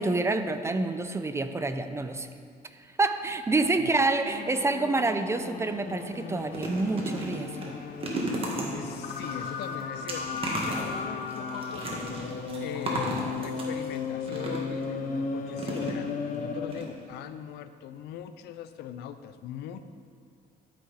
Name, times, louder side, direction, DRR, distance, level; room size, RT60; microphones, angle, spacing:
voice 1, 0.0-2.3 3.0-7.5, right 3 dB, 15° right, 9 dB, 0.5 m, -27 dB
sound 1, 4.3-17.0, left 5 dB, 50° left, 0.8 m, -36 dB
sound 2, 5.7-5.8 6.1-14.9 15.6-16.4 16.7-16.8 17.1-17.2, right 1 dB, 35° right, 1.8 m, -35 dB
voice 2, 8.6-19.8, left 9 dB, 80° left, 11 dB, 0.5 m, -41 dB
12.0 x 5.8 x 4.2 m, 2.1 s
cardioid pair, 110°, 17 cm